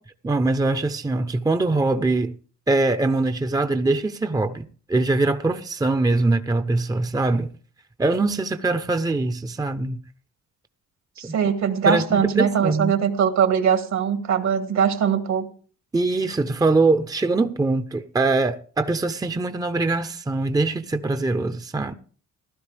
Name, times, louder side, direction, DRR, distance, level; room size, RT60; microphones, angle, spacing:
voice 1, 0.2-2.3 2.7-7.5 8.0-10.0 11.2-11.4 11.8-13.0 15.9-21.9, right 2 dB, 10° right, 0.7 m, -22 dB
voice 2, 11.2-15.5, right 7 dB, 65° right, 2.1 m, -21 dB
15.5 x 12.0 x 3.4 m
cardioid pair, 90°, 30 cm